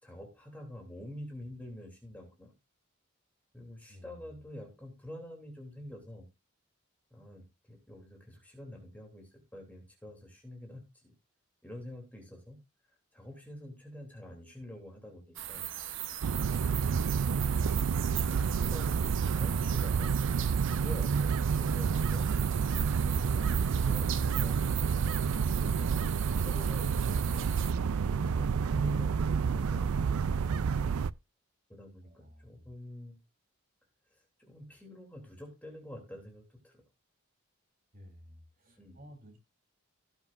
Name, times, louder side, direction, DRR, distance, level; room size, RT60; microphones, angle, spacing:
voice 1, 0.0-2.5 3.5-6.3 7.1-11.1 11.6-12.6 13.1-15.6 16.2-16.7 17.7-17.9 18.2-20.2 20.7-22.4 22.9-25.9 26.4-27.5 28.1-30.3 31.7-33.2 34.1-36.8 38.8-39.0, left 1 dB, 5° left, 3.0 m, -47 dB
voice 2, 3.9-4.3 32.0-32.7 37.9-39.4, equal, 40° right, 3.7 m, -54 dB
sound 1, 15.4-27.7, right 11 dB, 60° right, 1.0 m, -40 dB
sound 2, 16.2-31.1, right 6 dB, 80° right, 0.4 m, -29 dB
17.5 x 7.2 x 2.6 m
head